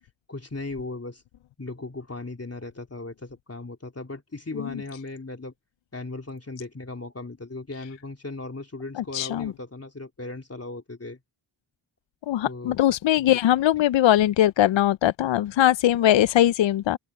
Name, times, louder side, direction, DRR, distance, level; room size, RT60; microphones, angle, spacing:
voice 1, 0.3-1.2 1.6-5.5 5.9-11.2 12.4-12.8, left 2 dB, 30° left, 3.6 m, -37 dB
voice 2, 8.9-9.5 12.3-17.0, left 12 dB, 65° left, 0.5 m, -21 dB
open air
cardioid pair, 60°, 48 cm